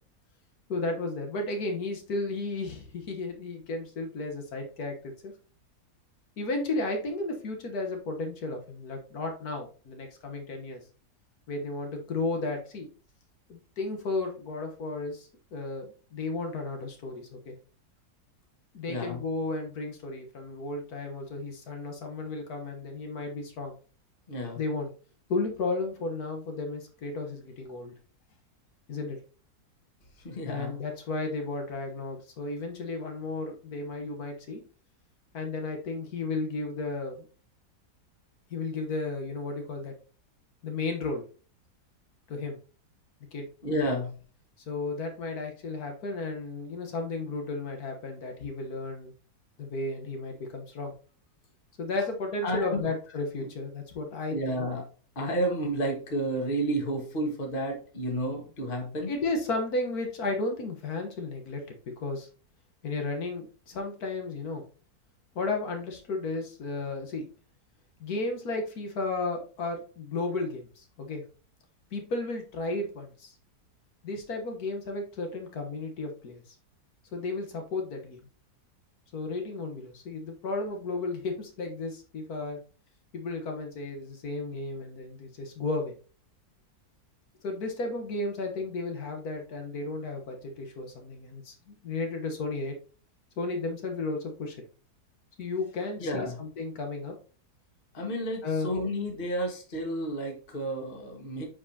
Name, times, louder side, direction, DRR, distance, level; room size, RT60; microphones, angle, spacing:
voice 1, 0.7-5.3 6.4-10.8 11.5-12.9 13.5-17.5 18.7-23.7 24.6-24.9 25.3-27.9 28.9-29.2 30.5-34.6 35.3-37.3 38.5-39.9 40.6-41.2 42.3-42.6 43.3-43.5 44.7-49.1 49.6-50.9 51.8-54.7 59.1-61.6 62.0-62.3 62.8-64.7 65.3-67.3 68.0-71.2 71.9-73.3 74.0-76.5 77.1-78.2 79.1-82.6 83.1-85.9 87.4-92.7 93.4-94.6 95.4-97.2 98.4-98.7, left 3 dB, 65° left, 4 dB, 1.7 m, -33 dB
voice 2, 18.9-19.2 24.3-24.6 30.2-30.8 43.6-44.1 52.4-52.9 53.4-53.5 54.3-54.8 55.1-59.1 96.0-96.4 97.9-101.4, right 1 dB, 35° left, 1 dB, 1.7 m, -31 dB
8.2 x 5.0 x 2.8 m, 0.38 s
omnidirectional pair, 1.7 m